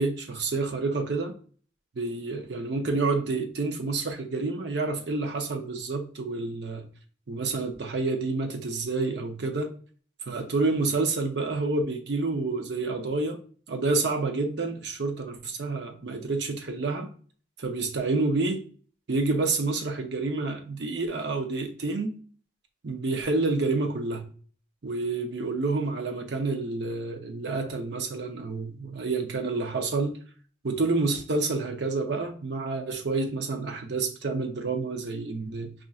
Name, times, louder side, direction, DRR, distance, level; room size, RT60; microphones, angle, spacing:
voice 1, 0.0-1.3 2.0-6.9 7.3-9.7 10.3-13.4 13.7-17.1 17.6-18.6 19.1-22.2 22.8-24.3 24.8-30.1 30.6-35.7, right 3 dB, 60° right, 0.6 m, -28 dB
5.3 x 2.5 x 2.4 m
head